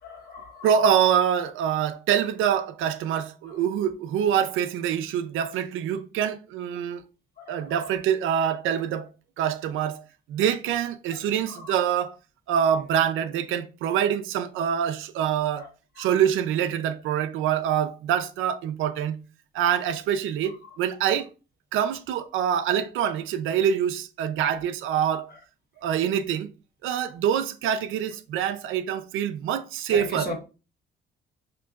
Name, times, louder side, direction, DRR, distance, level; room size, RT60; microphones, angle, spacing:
voice 1, 0.0-0.7 3.4-3.6 7.4-8.0 11.1-11.8 15.5-15.7 15.9-16.1 20.4-20.8 25.3-25.4 29.9-30.3, left 1 dB, 50° left, 1.5 m, -39 dB
voice 2, 0.6-7.0 7.5-9.1 9.4-10.0 10.3-12.2 12.5-15.7 16.0-19.2 19.5-21.3 21.7-25.3 25.8-26.5 26.8-30.3, right 9 dB, 85° right, 0.5 m, -25 dB
5.7 x 2.9 x 2.4 m
cardioid pair, 90°, 20 cm